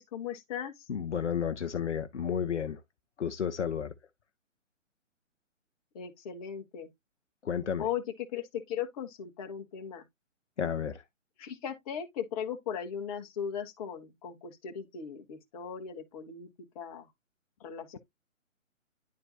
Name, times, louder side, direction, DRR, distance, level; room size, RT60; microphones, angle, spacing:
voice 1, 0.0-0.9 5.9-6.9 7.8-10.0 11.4-16.5 16.7-17.1 17.6-18.0, left 8 dB, 30° left, 1.4 m, -38 dB
voice 2, 0.9-2.8 3.2-3.9 7.4-7.9 10.6-11.0, left 8 dB, 60° left, 0.9 m, -32 dB
10.5 x 4.4 x 2.7 m
figure-of-eight pair, 135°, 39 cm